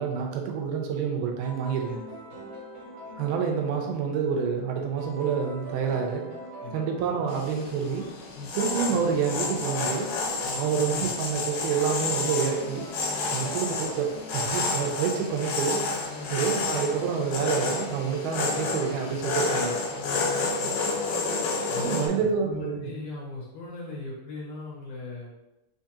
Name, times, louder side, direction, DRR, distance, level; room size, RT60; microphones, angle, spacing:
voice 1, 0.0-2.0 3.2-6.3 6.7-8.1 8.5-10.1 10.6-12.9 13.3-15.8 16.3-19.8 21.8-22.9, right 6 dB, 85° right, 2 dB, 2.1 m, -28 dB
sound 1, 1.4-15.6, right 1 dB, 65° right, 2.3 m, -43 dB
sound 2, 7.3-22.1, left 4 dB, 90° left, 2.2 m, -30 dB
voice 2, 19.9-20.8 21.7-25.4, left 3 dB, 70° left, -5 dB, 2.2 m, -39 dB
5.1 x 2.4 x 2.7 m, 0.97 s
omnidirectional pair, 3.8 m